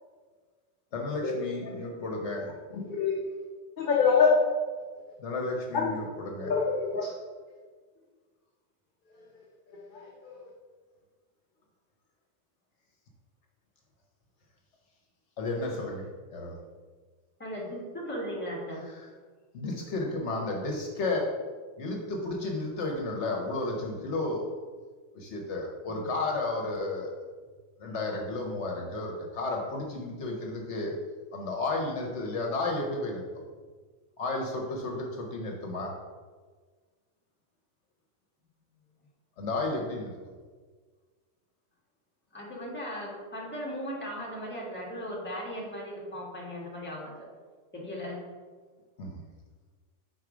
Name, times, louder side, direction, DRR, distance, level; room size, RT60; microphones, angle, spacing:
voice 1, 0.9-2.5 5.2-6.5 15.4-16.0 16.3-16.5 19.0-19.1 19.5-21.4 21.8-24.5 25.1-27.1 27.8-31.0 31.3-33.3 34.2-36.0 39.4-40.2 49.0-49.2, left 2 dB, 65° left, 0 dB, 1.1 m, -32 dB
voice 2, 2.9-3.4 3.8-4.4 5.7-5.9 6.4-7.1 9.9-10.1, left 5 dB, 50° left, -1 dB, 0.7 m, -24 dB
voice 3, 17.4-18.8 25.8-26.1 42.3-47.1 47.7-48.2, equal, 10° left, -4 dB, 1.3 m, -37 dB
4.7 x 4.1 x 4.9 m, 1.5 s
omnidirectional pair, 1.3 m